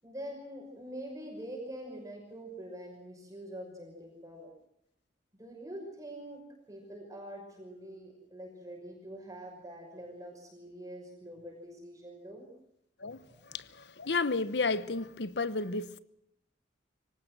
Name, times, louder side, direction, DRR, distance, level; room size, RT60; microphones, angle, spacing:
voice 1, 0.0-4.5 5.4-6.4 6.7-12.5 13.3-13.4, right 1 dB, 20° right, 6.0 m, -45 dB
voice 2, 13.5-16.0, left 3 dB, 65° left, 1.0 m, -32 dB
24.0 x 19.0 x 6.2 m
head